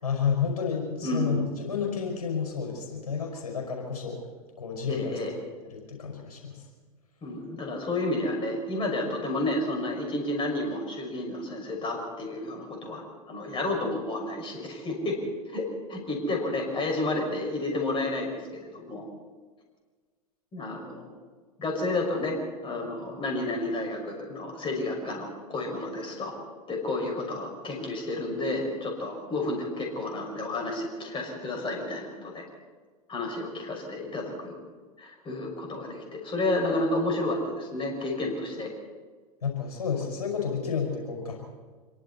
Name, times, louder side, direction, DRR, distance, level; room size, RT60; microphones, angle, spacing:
voice 1, 0.0-4.2 4.6-5.2 5.7-6.6 39.4-41.4, left 6 dB, 80° left, 1 dB, 5.7 m, -30 dB
voice 2, 4.8-5.3 7.2-15.2 15.5-19.1 20.5-21.1 21.6-22.4 22.6-26.3 26.7-32.4 33.1-34.6 35.0-38.7, left 2 dB, 25° left, 1 dB, 6.1 m, -31 dB
26.0 x 23.0 x 4.3 m, 1.5 s
hypercardioid pair, 90°, 19 cm